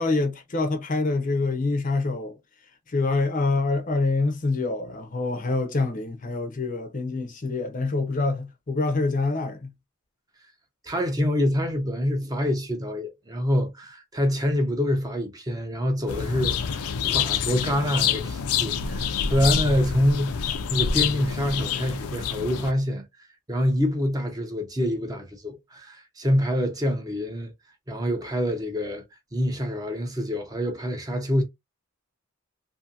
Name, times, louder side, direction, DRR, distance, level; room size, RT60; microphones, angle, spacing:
voice 1, 0.0-2.3 2.9-9.7, left 3 dB, 35° left, 0.5 m, -26 dB
voice 2, 10.8-23.0 23.5-27.5 27.9-29.0 29.3-31.4, equal, 15° right, 0.5 m, -26 dB
sound 1, 16.1-22.7, left 7 dB, 85° left, 0.4 m, -27 dB
2.6 x 2.6 x 2.5 m
head